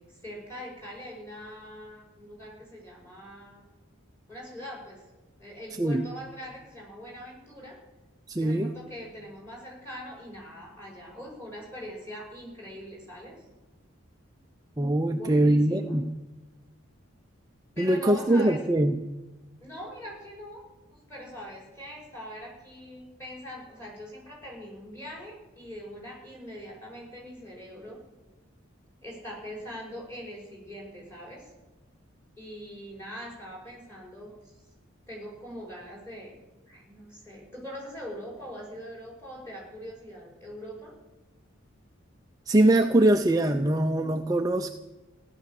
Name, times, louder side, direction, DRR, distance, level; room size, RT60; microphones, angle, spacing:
voice 1, 0.0-3.6 4.3-5.0 5.4-7.8 8.4-13.5 15.1-15.9 17.7-18.6 19.6-28.0 29.0-31.5 32.4-34.5 35.1-36.3 36.7-40.9, equal, 10° left, -3 dB, 6.1 m, -42 dB
voice 2, 8.3-8.7 14.8-16.1 17.8-19.0 42.5-44.7, right 1 dB, 20° right, 5 dB, 0.5 m, -22 dB
16.0 x 11.5 x 7.6 m, 1.1 s
head